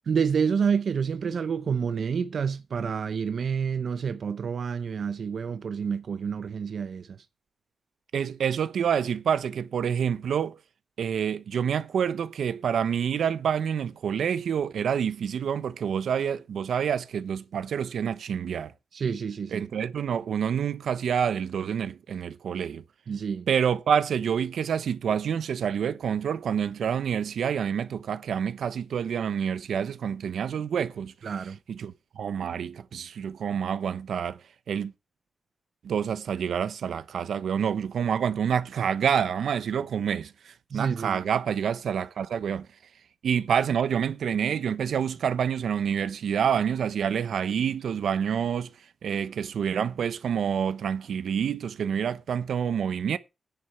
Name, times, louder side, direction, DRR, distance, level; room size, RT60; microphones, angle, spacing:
voice 1, 0.0-7.1 18.0-18.1 18.9-19.7 23.1-23.5 31.2-31.6 39.7-39.8 40.7-41.2, right 6 dB, 55° right, 0.6 m, -28 dB
voice 2, 8.1-10.6 11.0-18.7 19.5-22.8 23.5-31.1 31.7-34.4 34.7-34.9 35.8-42.7 43.2-48.7 49.0-53.2, right 8 dB, 80° right, 0.9 m, -27 dB
10.5 x 7.6 x 5.8 m
wide cardioid pair, 155°, 0 cm